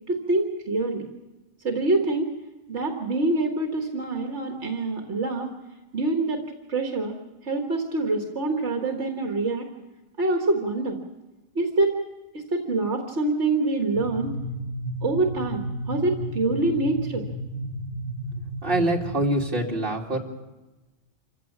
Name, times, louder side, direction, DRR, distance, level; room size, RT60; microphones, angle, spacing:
voice 1, 0.1-1.1 1.6-2.3 2.7-5.5 5.9-6.4 6.7-7.2 7.4-9.6 10.2-11.0 11.6-12.0 12.3-14.3 15.0-17.3, right 2 dB, 75° right, 3 dB, 1.9 m, -25 dB
sound 1, 13.9-19.1, right 1 dB, 90° left, 5.2 m, -33 dB
voice 2, 18.6-20.2, right 1 dB, 50° right, 0 dB, 2.6 m, -24 dB
26.5 x 15.5 x 7.3 m, 1.1 s
omnidirectional pair, 1.2 m